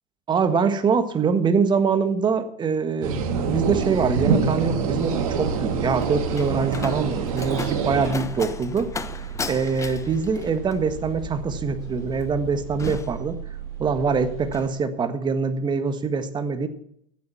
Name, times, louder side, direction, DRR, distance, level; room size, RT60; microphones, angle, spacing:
voice 1, 0.3-3.2 3.5-8.9 9.4-13.4 13.8-16.7, right 5 dB, 25° right, 10 dB, 1.6 m, -24 dB
sound 1, 3.0-8.1, right 5 dB, 75° right, 2.3 m, -25 dB
sound 2, 3.3-14.6, right 7 dB, 55° right, 3.5 m, -36 dB
Slam, 5.5-14.0 14.3-14.7, left 5 dB, 15° left, 1.0 m, -37 dB
15.0 x 8.3 x 6.0 m, 0.69 s
hypercardioid pair, 110°, 19 cm